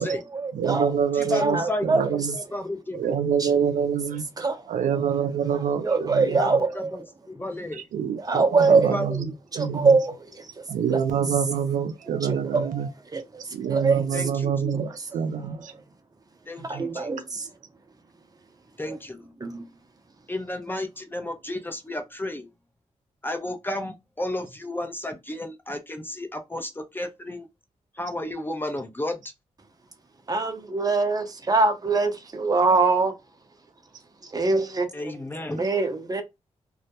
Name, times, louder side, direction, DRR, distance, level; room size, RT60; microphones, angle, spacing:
voice 1, 0.0-0.9 1.4-2.1 3.4-3.5 4.4-4.7 5.0-5.1 5.8-7.0 8.1-9.0 9.5-10.5 10.9-11.0 12.2-13.4 13.7-14.3 14.7-14.9 15.3-15.4 16.6-17.5 19.4-19.7 30.3-33.1 34.2-34.9 35.6-36.2, right 3 dB, 30° right, 0.6 m, -24 dB
voice 2, 0.5-2.4 2.9-4.3 4.7-6.6 7.7-10.0 10.7-12.9 13.5-15.7 16.6-16.8, right 7 dB, 90° right, 0.4 m, -26 dB
voice 3, 1.1-3.2 6.2-7.8 8.9-9.3 14.1-14.8 16.5-17.1 18.8-19.3 20.3-22.5 23.2-27.5 28.0-29.2 34.9-35.6, left 1 dB, 15° left, 0.5 m, -33 dB
2.3 x 2.1 x 2.8 m
cardioid pair, 75°, 13 cm